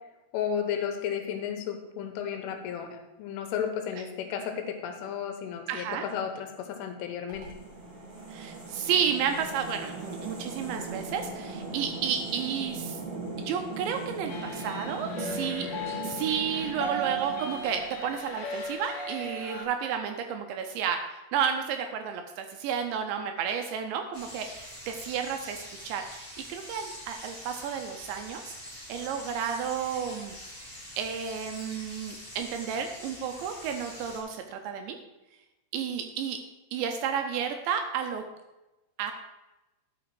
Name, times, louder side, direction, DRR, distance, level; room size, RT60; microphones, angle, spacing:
voice 1, 0.3-7.5, left 8 dB, 85° left, 5 dB, 3.6 m, -33 dB
voice 2, 5.7-6.0 8.3-13.0 13.4-15.7 16.0-28.5 28.9-30.3 31.0-35.0 35.7-36.4 36.7-38.2 39.0-39.1, right 7 dB, 80° right, 5 dB, 2.7 m, -32 dB
sound 1, 7.3-18.4, right 3 dB, 40° right, 2.5 m, -39 dB
sound 2, 14.3-19.6, right 1 dB, 55° left, 2.5 m, -36 dB
sound 3, 24.1-34.2, equal, 30° left, 0.4 m, -45 dB
11.5 x 5.9 x 4.8 m, 1.0 s
omnidirectional pair, 5.6 m